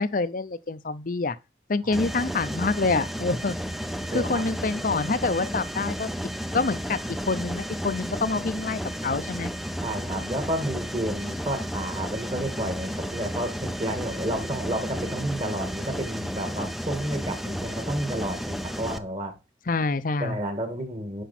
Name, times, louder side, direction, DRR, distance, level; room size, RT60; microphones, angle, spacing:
voice 1, 0.0-1.4 1.7-3.6 4.1-6.1 6.5-7.0 7.3-9.5 19.7-20.4, left 3 dB, 45° left, 0.6 m, -26 dB
Mechanisms, 1.9-19.0, equal, ahead, 0.5 m, -33 dB
voice 2, 4.1-4.5 9.8-19.4 20.2-21.2, right 1 dB, 35° right, 1.9 m, -31 dB
10.0 x 5.2 x 4.3 m
head